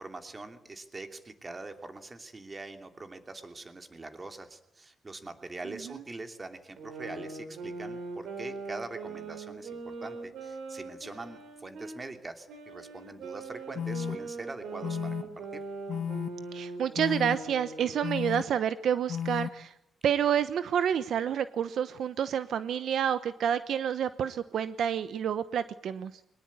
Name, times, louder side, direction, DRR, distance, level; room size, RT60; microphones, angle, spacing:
voice 1, 0.0-15.6, right 3 dB, 25° right, 7 dB, 2.9 m, -43 dB
sound 1, 6.8-12.0 12.5-18.1, right 3 dB, 85° right, 4.5 m, -41 dB
sound 2, 13.7-14.2 14.8-15.2 15.9-16.3 16.9-17.4 18.0-18.4 19.1-19.5, left 8 dB, 65° left, 1.1 m, -33 dB
voice 2, 16.5-19.7 20.0-26.1, right 8 dB, 70° right, 13 dB, 0.9 m, -29 dB
23.0 x 20.0 x 8.6 m, 0.79 s
cardioid pair, 115°, 0 cm